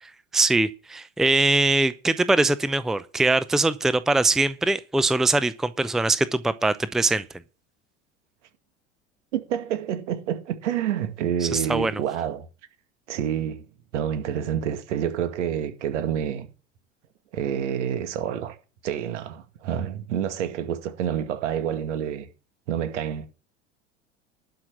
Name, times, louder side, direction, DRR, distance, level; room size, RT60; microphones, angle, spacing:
voice 1, 0.0-7.2 11.4-12.0, right 2 dB, ahead, 0.7 m, -22 dB
voice 2, 9.3-12.5 13.1-13.6 13.9-16.5 17.3-18.6 18.8-22.3 22.7-23.3, right 9 dB, 70° right, 2.2 m, -28 dB
11.5 x 5.9 x 7.7 m
hypercardioid pair, 80°, 37 cm